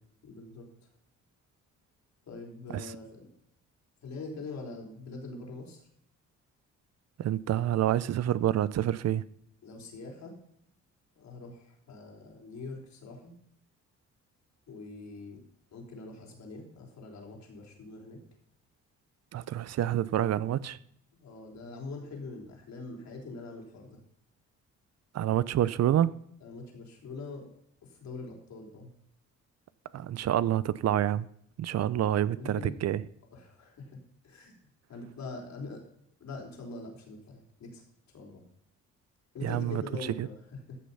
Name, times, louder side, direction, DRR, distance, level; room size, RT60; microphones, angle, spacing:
voice 1, 0.2-0.7 2.3-3.3 4.0-5.8 9.6-10.4 11.2-13.3 14.7-15.4 15.7-18.2 21.1-24.0 26.4-27.5 27.8-28.9 32.4-32.8 33.3-34.5 34.9-35.8 36.2-37.8 38.1-38.4 39.3-40.8, left 3 dB, 65° left, 4.1 m, -43 dB
voice 2, 7.2-9.2 19.3-20.8 25.1-26.2 29.9-31.3 31.6-33.0 39.4-39.8 40.2-40.3, right 11 dB, 60° right, 0.6 m, -27 dB
14.5 x 6.7 x 5.5 m
cardioid pair, 90°, 30 cm